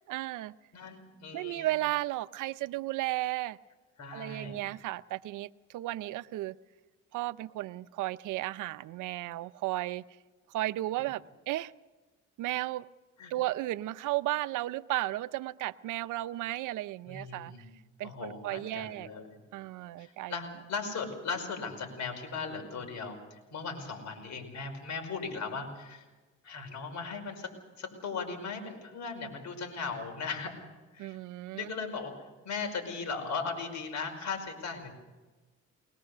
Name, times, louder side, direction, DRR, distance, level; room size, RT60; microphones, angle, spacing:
voice 1, 0.1-0.6 1.3-3.6 4.1-6.6 7.1-10.0 10.5-11.7 12.4-12.9 13.3-17.5 18.0-19.1 19.5-20.3 31.0-31.7, right 16 dB, 85° right, 0.6 m, -34 dB
voice 2, 0.7-1.7 4.0-4.6 13.2-13.3 17.1-17.7 18.0-19.3 20.0-23.2 23.5-26.0 26.4-27.5 27.8-30.5 30.9-31.2 31.5-32.2 32.4-34.9, left 4 dB, 65° left, 5.2 m, -38 dB
22.0 x 20.5 x 6.8 m
cardioid pair, 90°, 30 cm